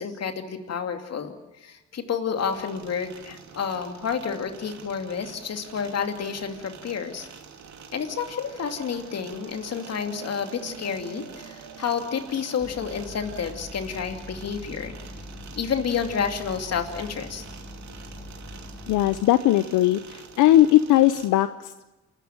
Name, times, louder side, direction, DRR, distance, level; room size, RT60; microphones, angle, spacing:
voice 1, 0.0-1.3 1.6-7.3 7.9-15.0 15.6-17.4, left 6 dB, 55° left, 5 dB, 2.7 m, -30 dB
sound 1, 2.4-21.3, right 6 dB, 65° right, 2.8 m, -46 dB
sound 2, 8.4-13.6, right 9 dB, 85° right, 2.6 m, -47 dB
sound 3, 12.6-19.2, left 1 dB, 5° left, 2.6 m, -42 dB
voice 2, 18.9-21.8, left 14 dB, 85° left, 12 dB, 0.7 m, -19 dB
28.5 x 13.5 x 9.0 m, 1.0 s
cardioid pair, 90°, 30 cm